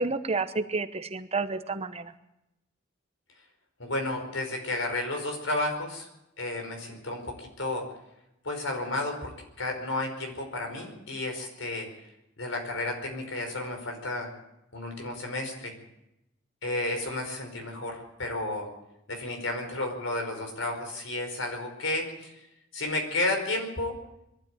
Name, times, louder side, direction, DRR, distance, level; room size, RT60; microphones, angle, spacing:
voice 1, 0.0-2.0, right 3 dB, 30° right, 9 dB, 1.0 m, -30 dB
voice 2, 3.8-6.1 6.4-7.8 8.4-9.3 9.6-11.9 12.4-14.3 14.7-15.7 16.6-18.7 19.1-22.3 22.7-24.0, left 2 dB, 80° left, 4 dB, 5.2 m, -32 dB
22.0 x 13.0 x 9.2 m, 0.88 s
head